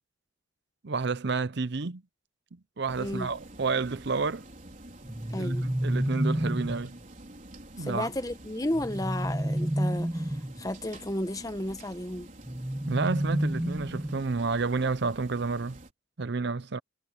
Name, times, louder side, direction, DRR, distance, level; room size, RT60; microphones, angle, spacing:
voice 1, 0.8-2.0 2.5-4.5 5.4-7.0 7.8-8.1 12.9-15.8 16.2-16.8, right 4 dB, 55° right, 0.7 m, -30 dB
sound 1, 2.9-15.9, right 1 dB, 40° right, 4.6 m, -48 dB
voice 2, 3.0-3.3 5.3-5.7 7.8-12.3, left 1 dB, 15° left, 1.0 m, -33 dB
sound 2, 5.0-6.9 8.7-10.6 12.4-14.4, right 1 dB, 10° right, 0.6 m, -30 dB
head